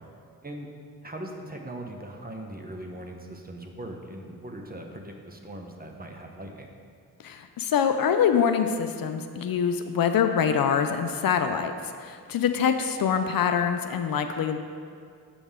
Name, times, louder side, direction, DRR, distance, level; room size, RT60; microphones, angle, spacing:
voice 1, 1.0-6.7, right 1 dB, 25° right, 2 dB, 0.9 m, -40 dB
voice 2, 7.2-11.7 12.0-14.6, left 7 dB, 65° left, 7 dB, 0.5 m, -24 dB
7.0 x 5.3 x 3.6 m, 2.2 s
cardioid pair, 50°, 39 cm